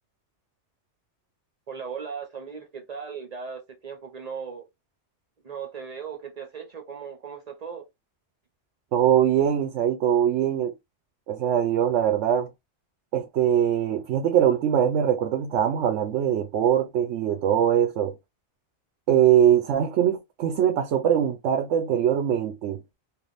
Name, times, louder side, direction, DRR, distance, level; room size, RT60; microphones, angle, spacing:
voice 1, 1.7-4.6 5.4-7.8, right 6 dB, 40° right, 0.7 m, -37 dB
voice 2, 8.9-10.7 11.3-12.5 13.1-18.1 19.1-22.8, right 9 dB, 80° right, 0.9 m, -22 dB
3.4 x 2.5 x 2.5 m
omnidirectional pair, 1.2 m